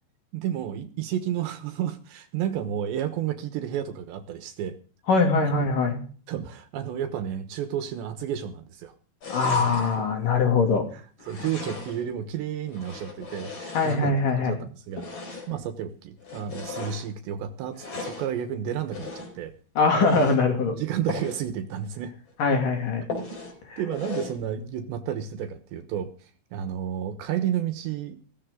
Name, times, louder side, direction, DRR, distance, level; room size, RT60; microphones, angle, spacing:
voice 1, 0.3-4.8 5.4-5.5 6.3-8.9 9.5-9.8 11.2-15.1 15.5-19.5 20.7-22.1 23.2-23.3 23.8-28.2, right 9 dB, 75° right, 9 dB, 3.2 m, -31 dB
voice 2, 5.1-6.0 9.3-10.9 13.7-14.6 19.8-20.7 22.4-23.0 23.7-23.8, left 4 dB, 50° left, 4 dB, 3.9 m, -22 dB
sound 1, 9.2-10.0 11.2-12.1 12.7-14.3 14.9-15.6 16.2-17.1 17.7-18.3 18.9-19.4 19.9-20.4 21.1-21.4 21.8-21.9 22.3-22.4 23.1-23.6 23.9-24.4, left 4 dB, 35° left, 5.2 m, -37 dB
16.5 x 15.0 x 3.8 m, 0.42 s
omnidirectional pair, 5.4 m